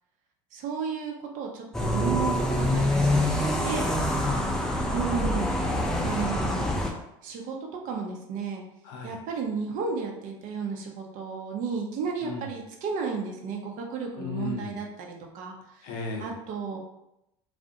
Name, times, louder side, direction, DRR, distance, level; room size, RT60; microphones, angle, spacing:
voice 1, 0.5-3.9 4.9-5.5 6.0-6.9 7.2-7.5 7.8-8.6 9.0-15.5 16.2-16.8, right 5 dB, 55° right, 1 dB, 0.6 m, -33 dB
sound 1, 1.7-6.9, left 1 dB, 5° left, 0.4 m, -25 dB
voice 2, 4.2-4.9 8.8-9.2 12.2-12.5 14.1-14.8 15.8-16.3, left 3 dB, 65° left, 2 dB, 0.6 m, -36 dB
2.4 x 2.1 x 2.6 m, 0.85 s
hypercardioid pair, 70°, 16 cm